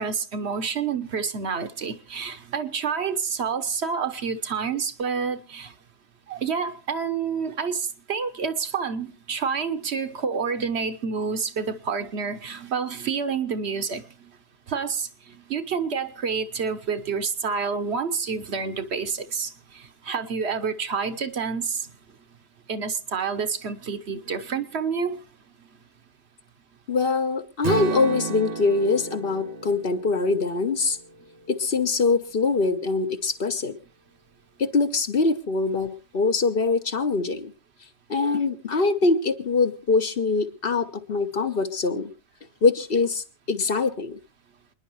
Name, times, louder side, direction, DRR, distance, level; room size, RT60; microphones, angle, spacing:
voice 1, 0.0-5.7 6.3-14.0 14.7-15.1 15.5-19.5 20.0-21.9 22.7-25.2, right 5 dB, 75° right, 1.3 m, -28 dB
voice 2, 26.9-31.0 31.5-33.8 34.6-37.5 38.1-42.1 42.6-44.2, left 4 dB, 60° left, 1.3 m, -23 dB
Strum, 27.6-31.8, right 5 dB, 40° right, 0.8 m, -33 dB
28.0 x 10.5 x 3.1 m
omnidirectional pair, 1.1 m